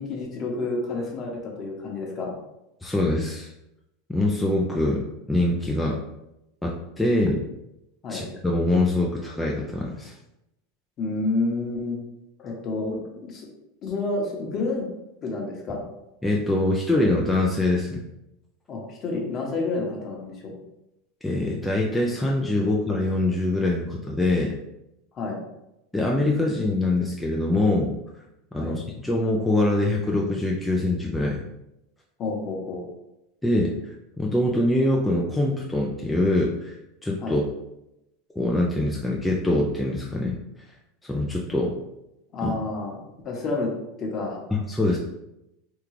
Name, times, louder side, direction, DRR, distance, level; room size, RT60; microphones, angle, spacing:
voice 1, 0.0-2.3 8.0-8.2 11.0-12.0 12.4-13.5 13.8-14.9 15.2-15.8 18.7-20.3 25.1-25.4 28.6-28.7 32.2-32.9 37.2-37.4 42.3-43.7 44.0-44.4, left 3 dB, 35° left, 0 dB, 0.9 m, -29 dB
voice 2, 2.8-3.5 4.1-6.0 6.6-7.4 8.1-10.1 16.2-18.0 21.2-24.5 25.9-27.9 28.5-31.5 33.4-36.8 37.0-37.4 38.4-40.4 41.0-41.7 42.4-42.5 44.5-45.0, left 2 dB, 5° left, -2 dB, 0.3 m, -24 dB
3.6 x 2.3 x 3.1 m, 0.89 s
supercardioid pair, 130°, 0 cm